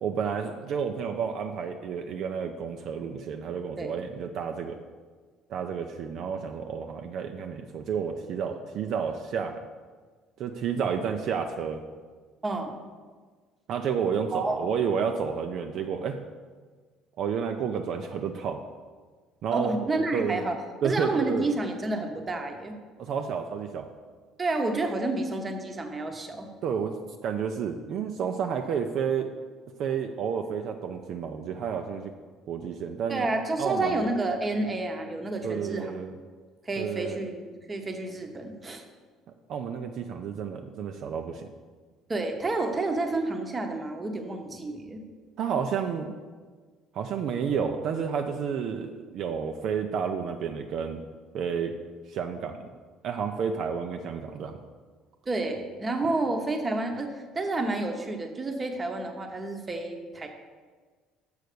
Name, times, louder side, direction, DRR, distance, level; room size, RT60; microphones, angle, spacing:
voice 1, 0.0-4.8 5.5-9.7 10.4-11.8 13.7-16.2 17.2-18.6 19.4-20.4 20.8-21.5 23.0-23.9 26.6-29.3 29.8-32.1 32.5-33.3 33.6-34.1 35.4-36.1 36.8-37.2 39.5-41.5 45.4-46.2 46.9-51.0 51.3-51.7 52.1-52.6 53.0-54.6, right 7 dB, 55° right, 5 dB, 0.5 m, -30 dB
voice 2, 12.4-12.7 14.3-14.7 19.5-20.5 20.8-22.8 24.4-26.5 33.1-35.9 36.7-38.8 42.1-45.0 55.3-60.3, right 2 dB, 20° right, 4 dB, 0.9 m, -30 dB
6.4 x 5.7 x 6.7 m, 1.5 s
cardioid pair, 130°, 0 cm